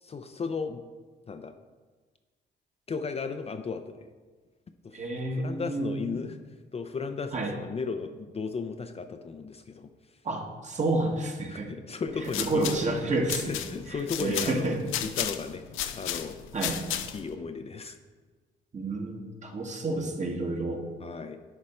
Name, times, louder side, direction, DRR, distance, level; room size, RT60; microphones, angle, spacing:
voice 1, 0.0-0.8 1.3-1.5 2.9-4.1 4.8-5.0 5.4-9.9 11.5-12.6 13.5-15.6 15.9-16.4 17.1-18.0 21.0-21.4, left 5 dB, 30° left, 7 dB, 0.5 m, -35 dB
voice 2, 4.9-6.0 7.3-7.5 10.2-11.7 12.2-13.5 13.9-14.9 16.5-16.8 18.7-20.8, right 2 dB, 35° right, 2 dB, 1.4 m, -30 dB
sound 1, 12.1-17.3, left 11 dB, 90° left, 0.6 m, -34 dB
10.5 x 5.1 x 4.3 m, 1.4 s
cardioid pair, 90°, 20 cm